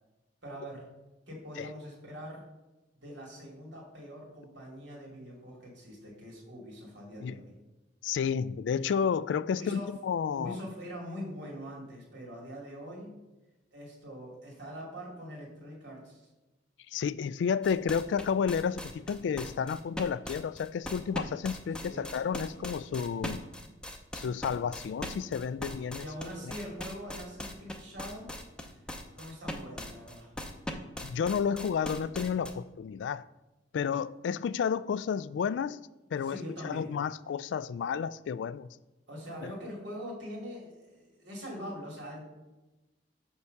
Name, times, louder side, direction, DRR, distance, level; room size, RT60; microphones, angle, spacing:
voice 1, 0.4-0.9 1.3-2.5 3.0-7.6 9.5-9.9 10.3-13.1 13.7-16.3 21.8-22.0 26.0-28.8 29.1-30.3 36.2-36.9 39.1-42.2, equal, 80° right, 2.6 m, -43 dB
voice 2, 8.0-10.6 16.9-23.4 24.1-26.0 26.4-26.5 31.0-33.2 33.7-35.8 36.1-38.7 39.4-39.5, left 7 dB, 85° left, 0.3 m, -31 dB
sound 1, 17.6-32.5, left 1 dB, 5° left, 0.6 m, -40 dB
5.6 x 4.6 x 6.5 m
head